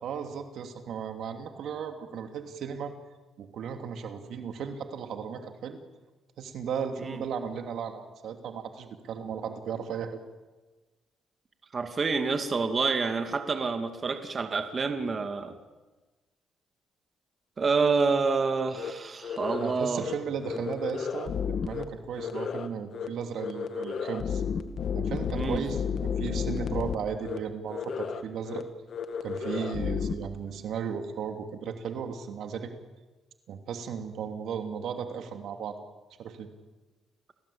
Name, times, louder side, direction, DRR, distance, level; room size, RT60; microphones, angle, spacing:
voice 1, 0.0-2.9 3.4-5.8 6.4-10.2 19.6-24.4 24.9-28.6 29.2-32.7 33.5-35.8 36.2-36.5, right 7 dB, 75° right, 6 dB, 2.8 m, -35 dB
voice 2, 11.7-15.5 17.6-20.0 25.3-25.6, right 4 dB, 40° right, 7 dB, 2.4 m, -28 dB
sound 1, 18.8-18.9 19.2-19.7 20.0-20.1 20.4-21.8 22.2-22.7 22.9-23.1 23.4-27.0 27.2-27.4 27.7-28.2 28.5-28.6 28.9-30.1, left 6 dB, 60° left, 2.1 m, -32 dB
29.5 x 18.5 x 8.8 m, 1.2 s
cardioid pair, 90°, 0 cm